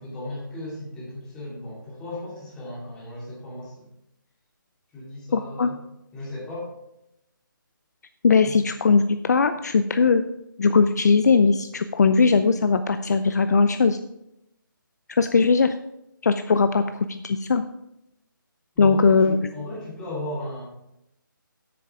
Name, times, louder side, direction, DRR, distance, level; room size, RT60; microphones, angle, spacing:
voice 1, 0.0-3.9 4.9-5.8 6.1-6.7 8.4-8.6 18.7-20.6, left 1 dB, 5° left, -6 dB, 2.5 m, -36 dB
voice 2, 5.3-5.7 8.2-10.2 10.6-14.0 15.1-15.7 16.2-17.6 18.8-19.4, left 4 dB, 50° left, 10 dB, 0.5 m, -19 dB
10.5 x 8.5 x 3.6 m, 0.84 s
hypercardioid pair, 165°, 11 cm